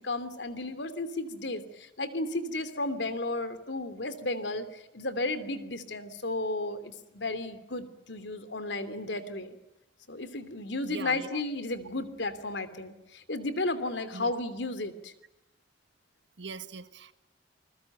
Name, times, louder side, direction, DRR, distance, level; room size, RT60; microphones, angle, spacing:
voice 1, 0.0-9.6 10.1-15.1, left 2 dB, 70° left, 3.0 m, -33 dB
voice 2, 10.8-11.4 14.1-14.4 16.4-17.1, right 4 dB, 75° right, 1.6 m, -41 dB
28.5 x 21.5 x 9.2 m
head